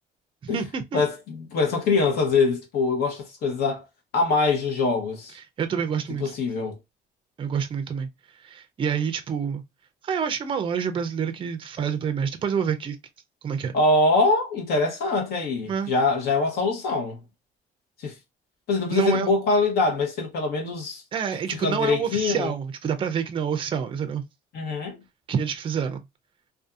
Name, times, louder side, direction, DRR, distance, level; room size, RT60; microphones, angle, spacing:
voice 1, 0.4-1.0 5.3-6.2 7.4-8.1 8.4-9.6 10.0-13.0 13.4-13.7 15.7-15.9 18.9-19.3 21.1-24.2 25.3-26.0, right 7 dB, 30° right, 0.4 m, -27 dB
voice 2, 0.9-3.8 4.1-5.4 6.2-6.8 13.7-17.2 18.0-18.1 18.7-21.0 21.6-22.5 24.5-25.0, left 3 dB, 65° left, 0.9 m, -23 dB
2.6 x 2.4 x 2.3 m
cardioid pair, 110°, 17 cm